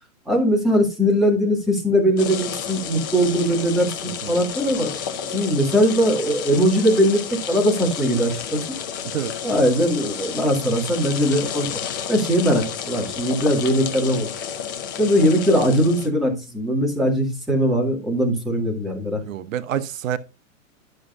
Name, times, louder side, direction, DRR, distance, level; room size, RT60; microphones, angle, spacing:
voice 1, 0.3-5.0 5.3-8.6 9.4-11.7 12.1-14.3 15.0-19.2, equal, ahead, 2.0 m, -20 dB
sound 1, 2.2-16.1, left 8 dB, 15° left, 0.4 m, -31 dB
voice 2, 4.1-4.4 9.1-9.3 19.3-20.2, right 10 dB, 75° right, 0.9 m, -27 dB
12.0 x 6.3 x 2.5 m
hypercardioid pair, 155°, 40 cm